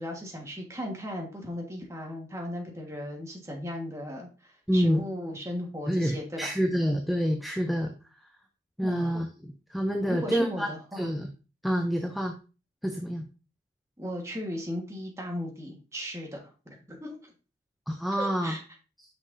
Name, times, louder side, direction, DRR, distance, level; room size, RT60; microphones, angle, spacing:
voice 1, 0.0-6.6 8.8-9.2 10.1-11.1 14.0-17.2 18.2-18.6, left 1 dB, 15° right, 1 dB, 1.4 m, -36 dB
voice 2, 4.7-5.0 5.9-7.9 8.8-10.7 11.0-11.3 11.6-12.3 12.8-13.3 17.9-18.5, equal, ahead, 2 dB, 0.5 m, -27 dB
6.2 x 5.9 x 2.6 m, 0.33 s
head